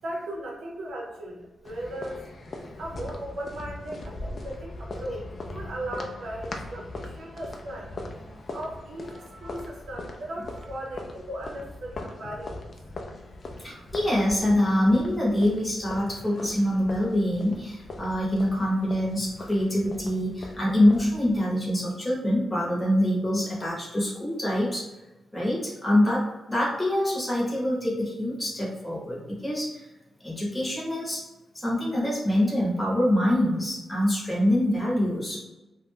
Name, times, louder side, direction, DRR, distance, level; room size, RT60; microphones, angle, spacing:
voice 1, 0.0-2.3 2.8-8.2 8.5-12.7, right 1 dB, 80° right, -2 dB, 0.7 m, -37 dB
sound 1, 1.6-21.4, left 2 dB, 45° left, 0.4 m, -40 dB
voice 2, 13.6-24.9 25.3-29.8 30.2-31.2 31.5-35.4, left 1 dB, 10° left, -5 dB, 0.8 m, -25 dB
2.4 x 2.1 x 3.2 m, 1.0 s
wide cardioid pair, 125°, 0 cm